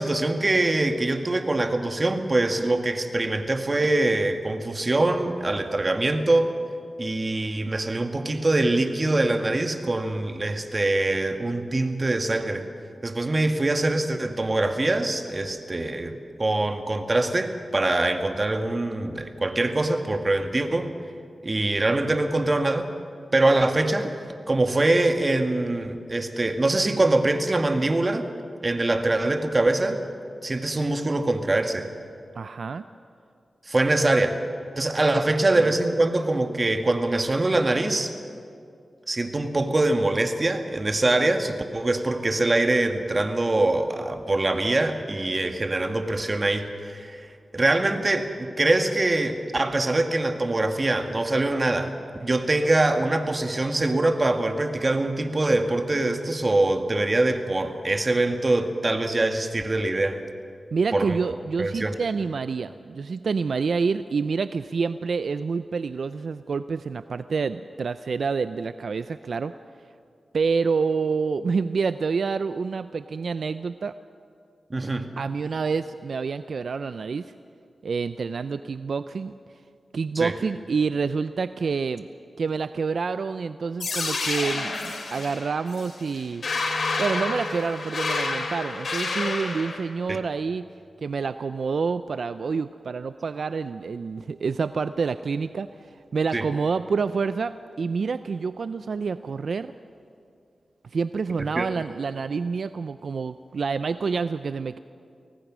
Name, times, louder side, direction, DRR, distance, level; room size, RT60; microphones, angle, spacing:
voice 1, 0.0-6.5 7.0-12.7 13.0-20.9 21.4-22.9 23.3-24.1 24.5-28.3 28.6-30.0 30.4-31.9 33.7-34.4 34.8-38.1 39.1-47.3 47.5-51.9 52.2-60.2 60.9-61.2 61.6-62.0 74.7-75.1 80.1-80.3 90.1-90.2 96.3-96.4 101.5-101.7, right 2 dB, 35° right, 6 dB, 1.8 m, -23 dB
voice 2, 32.3-32.8 35.6-35.7 60.7-69.5 70.3-73.9 75.2-77.3 77.8-79.3 79.9-82.1 82.4-86.4 87.0-90.7 91.0-99.7 100.8-104.8, right 5 dB, 75° right, 12 dB, 0.4 m, -28 dB
sound 1, 83.8-89.8, left 3 dB, 70° left, 2.8 m, -29 dB
24.5 x 18.0 x 6.2 m, 2.4 s
cardioid pair, 60°, 0 cm